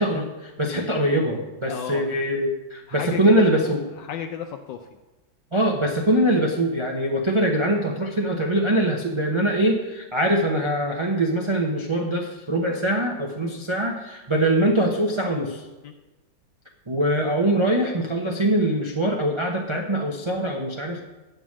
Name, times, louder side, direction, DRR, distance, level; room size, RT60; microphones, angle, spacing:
voice 1, 0.0-3.8 5.5-15.6 16.9-21.0, right 1 dB, 30° right, 0 dB, 0.5 m, -23 dB
voice 2, 1.7-2.2 2.9-4.9 15.8-15.9, left 8 dB, 75° left, 5 dB, 1.2 m, -34 dB
9.0 x 5.9 x 7.3 m, 1.1 s
omnidirectional pair, 2.1 m